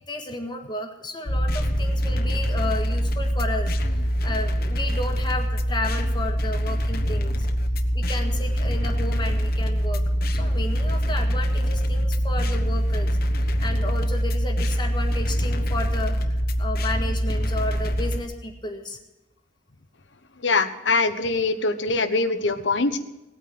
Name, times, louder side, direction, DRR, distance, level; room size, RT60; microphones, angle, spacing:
voice 1, 0.1-7.5 7.9-10.0 10.3-19.0, left 2 dB, 25° left, 4 dB, 1.7 m, -33 dB
sound 1, 1.3-18.2, equal, 55° left, 1.2 m, -24 dB
voice 2, 20.4-23.0, left 3 dB, 85° left, 10 dB, 1.2 m, -23 dB
18.0 x 9.1 x 7.7 m, 0.97 s
head